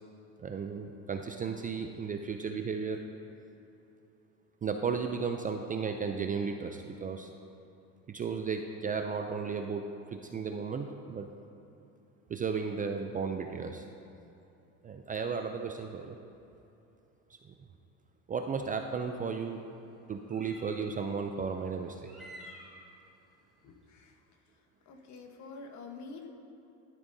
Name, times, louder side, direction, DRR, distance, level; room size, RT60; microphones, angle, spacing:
voice 1, 0.4-3.0 4.6-7.3 8.1-11.3 12.3-13.8 14.8-16.2 17.4-17.5 18.3-19.6 20.1-22.1, right 5 dB, 25° right, 5 dB, 0.4 m, -34 dB
sound 1, 18.9-19.0 20.2-21.0 22.0-22.9, equal, ahead, 2.4 m, -50 dB
voice 2, 24.9-26.3, left 4 dB, 50° left, 4 dB, 1.2 m, -46 dB
12.0 x 10.5 x 2.7 m, 2.8 s
supercardioid pair, 105°, 37 cm